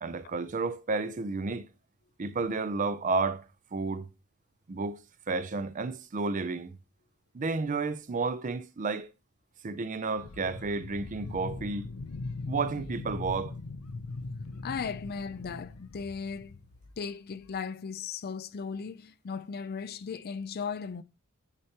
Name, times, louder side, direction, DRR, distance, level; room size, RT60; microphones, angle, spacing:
voice 1, 0.0-1.7 2.2-3.4 3.7-4.1 4.7-5.0 5.3-6.7 7.3-9.1 9.6-11.9 12.5-13.5, right 4 dB, 35° right, 0.5 m, -31 dB
sound 1, 10.2-17.0 17.4-17.5, left 3 dB, 90° left, 0.7 m, -40 dB
voice 2, 14.6-16.6 17.0-21.0, left 6 dB, 45° left, 0.4 m, -37 dB
9.6 x 4.4 x 2.9 m
head